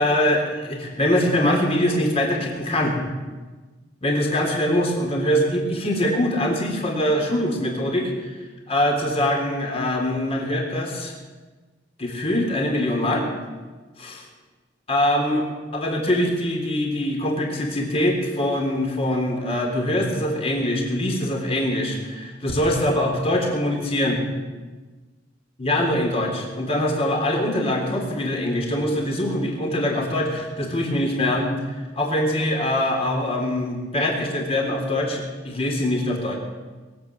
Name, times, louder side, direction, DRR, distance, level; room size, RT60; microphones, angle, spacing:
voice 1, 0.0-3.0 4.0-8.4 8.7-11.1 12.0-13.3 14.0-14.1 14.9-15.5 15.7-24.2 25.6-31.5 32.0-36.4, left 1 dB, 35° left, 0 dB, 3.6 m, -23 dB
22.0 x 8.3 x 7.9 m, 1.3 s
head